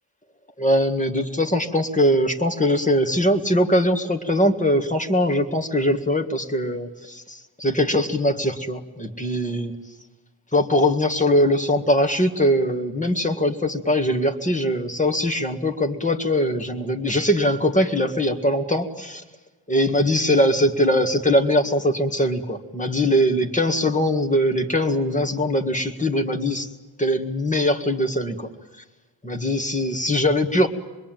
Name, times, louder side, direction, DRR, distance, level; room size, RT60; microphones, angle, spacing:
voice 1, 0.6-9.8 10.5-19.2 19.7-26.7 27.0-28.5 29.2-30.7, left 1 dB, 15° left, 4 dB, 1.9 m, -21 dB
26.0 x 22.0 x 9.2 m, 1.2 s
wide cardioid pair, 145°, 49 cm